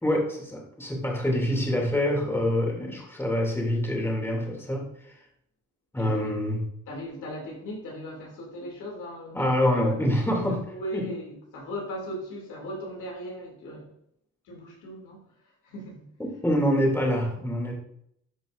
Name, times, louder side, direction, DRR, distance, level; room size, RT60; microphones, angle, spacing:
voice 1, 0.0-4.9 5.9-6.6 9.3-10.6 10.9-11.1 16.2-17.7, left 1 dB, 10° left, -1 dB, 2.5 m, -26 dB
voice 2, 6.0-6.3 6.9-9.6 9.8-9.9 10.7-13.9 14.4-16.1, equal, 90° left, -1 dB, 2.6 m, -38 dB
11.5 x 5.1 x 2.5 m, 0.71 s
cardioid pair, 90°, 30 cm